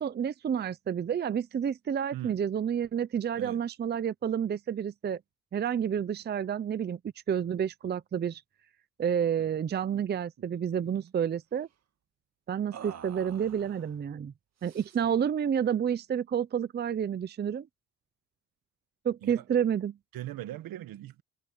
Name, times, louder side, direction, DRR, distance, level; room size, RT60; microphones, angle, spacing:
voice 1, 0.0-5.2 5.5-7.0 7.3-8.4 9.0-11.7 12.5-14.3 14.6-17.7 19.0-20.0, right 8 dB, 30° right, 0.6 m, -30 dB
voice 2, 2.1-2.4 3.3-3.6 19.2-19.4 20.1-21.2, right 13 dB, 75° right, 1.7 m, -39 dB
sound 1, 9.8-10.0 10.4-11.1 12.7-14.0 14.6-15.2, right 9 dB, 50° right, 1.9 m, -49 dB
cardioid pair, 120°, 35 cm